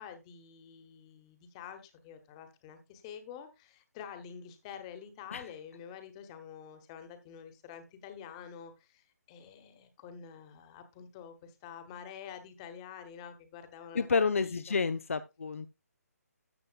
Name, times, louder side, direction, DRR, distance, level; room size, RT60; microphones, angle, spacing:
voice 1, 0.0-14.1 14.4-14.8, left 8 dB, 20° left, 1.2 m, -48 dB
voice 2, 13.9-15.7, left 5 dB, 55° left, 0.5 m, -29 dB
13.0 x 7.6 x 2.4 m
figure-of-eight pair, 145°, 9 cm